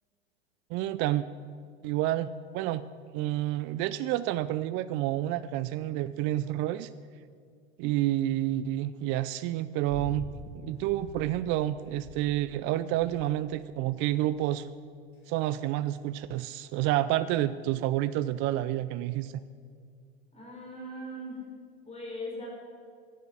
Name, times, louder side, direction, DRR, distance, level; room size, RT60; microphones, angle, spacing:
voice 1, 0.7-1.3 1.8-2.9 3.1-6.9 7.8-10.3 10.6-14.7 15.3-19.3, right 14 dB, 40° right, 15 dB, 0.4 m, -29 dB
sound 1, 9.9-10.3 10.7-11.3 11.9-12.5 13.0-13.5 14.1-14.4 15.1-15.5 16.4-16.5, left 3 dB, 45° left, 4.0 m, -46 dB
voice 2, 20.3-21.4 21.9-22.5, left 1 dB, 20° left, -2 dB, 4.1 m, -39 dB
12.0 x 9.6 x 7.4 m, 2.1 s
hypercardioid pair, 90°, 31 cm